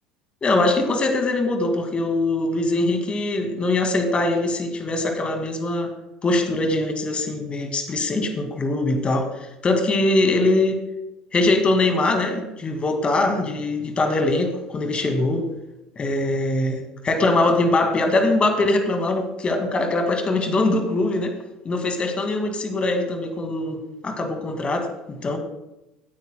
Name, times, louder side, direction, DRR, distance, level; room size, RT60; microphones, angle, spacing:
voice 1, 0.4-5.9 6.2-9.3 9.6-10.8 11.3-15.5 16.0-21.3 21.6-25.4, left 2 dB, 30° left, 5 dB, 2.0 m, -22 dB
18.0 x 9.3 x 2.2 m, 0.92 s
hypercardioid pair, 70°, 4 cm